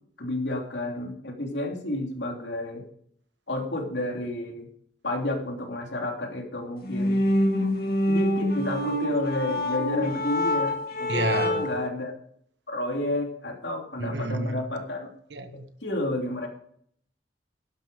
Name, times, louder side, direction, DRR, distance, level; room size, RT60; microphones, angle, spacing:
voice 1, 0.2-2.8 3.5-4.7 5.0-7.2 8.1-12.1 12.7-15.1 15.8-16.5, left 1 dB, 80° left, 2 dB, 3.0 m, -31 dB
sound 1, 6.8-11.9, left 1 dB, 60° left, 2.1 m, -26 dB
voice 2, 11.1-11.7 14.0-14.6 15.3-15.7, right 2 dB, 85° right, 9 dB, 1.4 m, -29 dB
12.0 x 11.0 x 5.1 m, 0.66 s
head